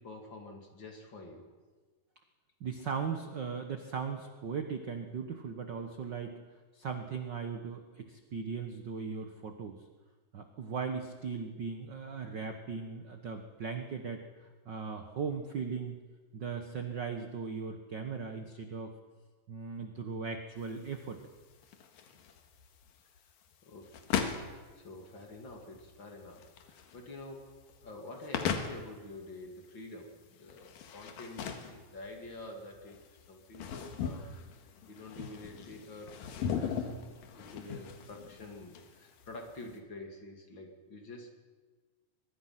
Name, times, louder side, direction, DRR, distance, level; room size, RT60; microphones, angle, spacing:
voice 1, 0.0-1.5 23.6-36.2 36.5-36.7 37.3-41.5, left 2 dB, 35° left, 2 dB, 2.9 m, -48 dB
voice 2, 2.6-6.4 6.7-9.8 10.3-14.2 14.7-15.9 16.3-18.9 19.5-21.2, right 5 dB, 60° right, 6 dB, 1.1 m, -38 dB
sound 1, 20.6-39.8, left 7 dB, 90° left, 3.3 m, -40 dB
23.0 x 22.0 x 5.9 m, 1.4 s
omnidirectional pair, 3.9 m